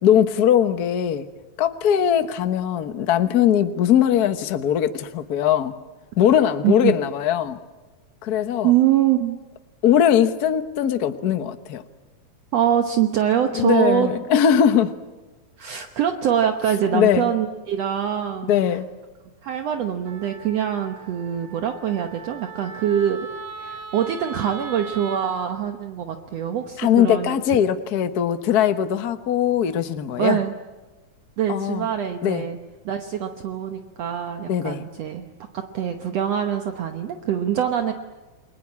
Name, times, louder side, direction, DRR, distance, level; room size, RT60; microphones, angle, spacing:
voice 1, 0.0-1.3 1.6-5.7 6.2-7.6 8.2-8.7 9.8-11.8 13.5-14.9 16.9-17.3 18.5-18.8 26.8-30.4 31.5-31.9 32.2-32.4 34.5-34.8, left 9 dB, 60° left, 9 dB, 1.0 m, -20 dB
voice 2, 8.6-9.4 12.5-14.1 15.6-18.5 19.4-23.3 23.6-27.6 30.2-30.5 31.4-32.6 32.9-35.3 35.5-37.9, right 9 dB, 65° right, 5 dB, 2.1 m, -24 dB
Wind instrument woodwind instrument, 20.0-25.2, right 4 dB, 90° right, 3.7 m, -39 dB
29.5 x 21.5 x 8.6 m, 1.2 s
omnidirectional pair, 3.5 m